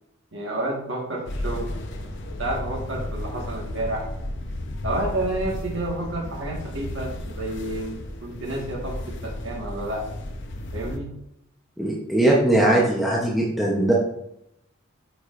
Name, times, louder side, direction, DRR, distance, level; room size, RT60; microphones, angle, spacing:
voice 1, 0.3-1.7 2.4-4.0 4.8-10.2 10.7-11.1, right 1 dB, 60° right, -1 dB, 1.4 m, -30 dB
sound 1, 1.3-11.0, left 1 dB, 60° left, 0.7 m, -33 dB
voice 2, 11.8-13.9, right 1 dB, ahead, -4 dB, 0.7 m, -20 dB
8.9 x 4.9 x 2.5 m, 0.81 s
head